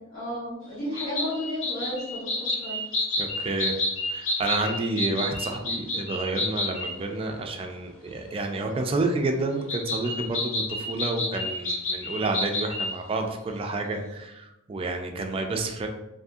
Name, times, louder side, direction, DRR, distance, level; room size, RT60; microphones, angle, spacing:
voice 1, 0.0-2.8, left 1 dB, 75° left, -11 dB, 1.2 m, -33 dB
sound 1, 1.0-6.9 9.7-12.9, left 1 dB, 90° left, 0.7 m, -30 dB
voice 2, 3.2-3.8 4.1-15.9, right 2 dB, 30° right, 3 dB, 0.3 m, -29 dB
2.6 x 2.6 x 2.3 m, 0.92 s
head